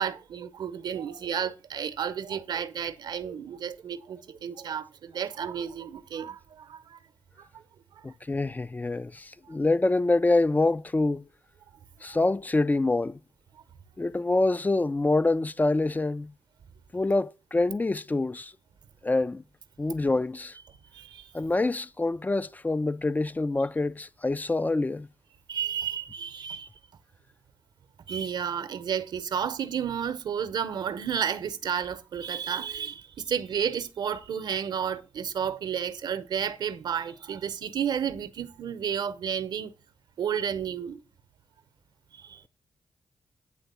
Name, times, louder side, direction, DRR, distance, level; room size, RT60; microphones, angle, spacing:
voice 1, 0.0-7.0 7.4-7.5 20.9-21.3 25.5-26.7 28.1-39.7 40.2-41.0 42.1-42.4, right 8 dB, 70° right, 0.8 m, -32 dB
voice 2, 8.0-11.3 12.0-13.2 14.0-16.3 16.9-18.5 19.0-19.4 19.8-20.6 21.3-25.1, left 2 dB, 20° left, 0.4 m, -26 dB
9.1 x 3.5 x 6.8 m
supercardioid pair, 40°, 8 cm